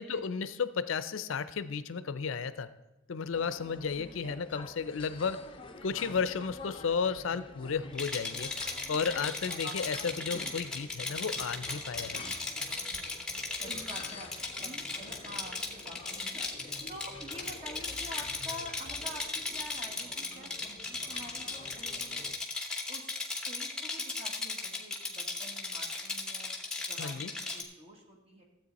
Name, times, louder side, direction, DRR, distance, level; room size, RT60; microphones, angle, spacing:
voice 1, 0.0-2.7 3.1-5.4 5.8-8.5 8.9-12.2 27.0-27.3, left 6 dB, 70° left, 14 dB, 0.5 m, -33 dB
sound 1, 3.3-22.4, left 3 dB, 25° left, 0.5 m, -48 dB
voice 2, 4.0-4.4 9.6-10.0 13.6-14.3 14.6-16.4 16.9-22.3 22.9-23.2 23.5-26.5 26.8-28.4, equal, 30° right, 1 dB, 1.7 m, -47 dB
Rattle, 7.9-27.6, left 3 dB, 5° left, 0.9 m, -37 dB
13.0 x 7.9 x 4.1 m, 0.95 s
head